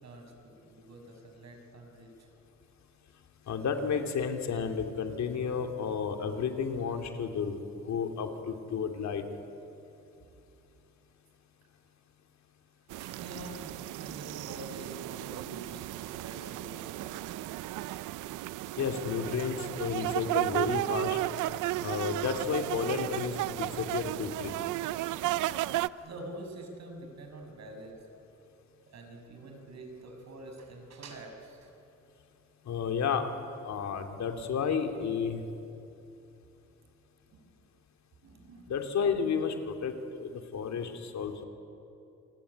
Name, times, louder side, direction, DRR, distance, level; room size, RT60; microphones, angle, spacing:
voice 1, 0.0-2.3 6.7-6.8 13.0-17.4 25.8-28.0 28.9-31.7 37.3-37.7 38.2-38.7 40.3-40.4 40.7-41.0, right 1 dB, 60° right, 3 dB, 6.6 m, -47 dB
voice 2, 3.5-9.2 18.8-21.2 21.8-24.5 32.6-33.3 33.6-35.4 38.7-41.4, left 6 dB, 65° left, 5 dB, 2.9 m, -32 dB
sound 1, 12.9-25.9, right 16 dB, 90° right, 0.6 m, -34 dB
28.0 x 20.0 x 10.0 m, 2.8 s
cardioid pair, 90°, 30 cm